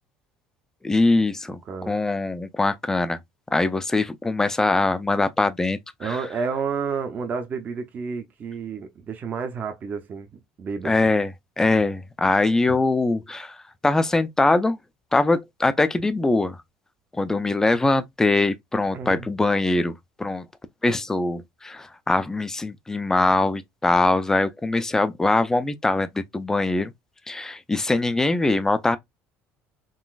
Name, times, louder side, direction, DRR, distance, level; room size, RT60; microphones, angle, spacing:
voice 1, 0.8-1.6 1.9-3.2 3.5-6.2 10.8-13.6 13.8-14.8 15.1-16.6 17.2-20.5 20.8-26.9 27.3-29.0, left 2 dB, 10° left, 0.4 m, -22 dB
voice 2, 1.7-2.0 6.0-10.9 12.7-12.8 18.9-19.3, right 5 dB, 35° right, 0.6 m, -30 dB
3.8 x 2.4 x 2.3 m
cardioid pair, 130°, 5 cm